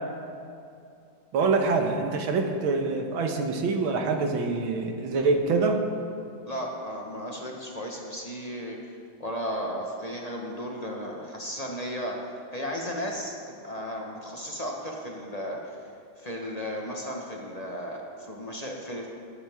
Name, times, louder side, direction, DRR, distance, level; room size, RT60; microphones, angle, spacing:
voice 1, 1.3-5.8, right 4 dB, 85° right, 3 dB, 2.0 m, -25 dB
voice 2, 6.5-8.8 9.2-15.9 16.2-19.1, equal, 25° left, -1 dB, 1.0 m, -35 dB
19.0 x 8.9 x 3.6 m, 2.4 s
omnidirectional pair, 2.2 m